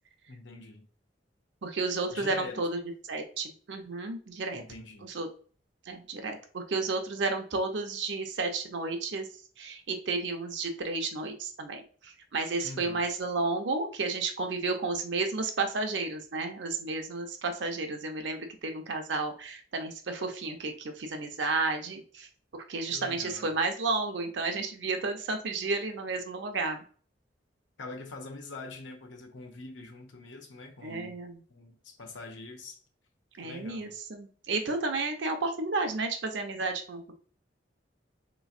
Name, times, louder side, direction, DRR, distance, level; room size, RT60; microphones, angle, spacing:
voice 1, 0.3-0.9 2.1-2.7 4.5-5.1 12.6-13.0 22.9-23.5 27.8-31.2 31.5-32.8 33.4-33.9, left 3 dB, 80° left, 0.7 m, -44 dB
voice 2, 1.6-2.8 3.1-4.6 5.0-5.3 5.8-9.3 9.6-22.3 22.7-26.8 30.8-31.4 33.4-37.1, right 3 dB, 70° right, 0.6 m, -32 dB
3.5 x 3.0 x 2.4 m
head